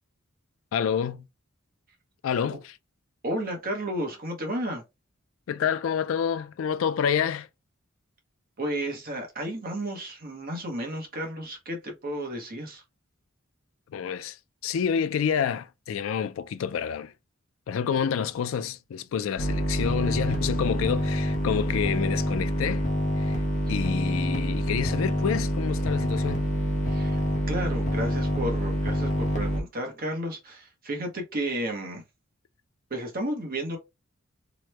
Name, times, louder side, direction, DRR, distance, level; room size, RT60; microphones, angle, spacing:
voice 1, 0.7-1.3 2.2-2.8 5.5-7.5 13.9-14.4 14.6-17.1 17.7-22.9 23.2-23.4 23.7-26.5, left 7 dB, 70° left, 0.3 m, -28 dB
voice 2, 3.2-4.8 8.6-12.8 23.8-23.9 26.9-27.2 27.5-32.0 32.9-33.8, right 1 dB, 45° right, 0.9 m, -32 dB
sound 1, 19.4-29.6, equal, 40° left, 0.7 m, -26 dB
2.9 x 2.1 x 3.1 m
head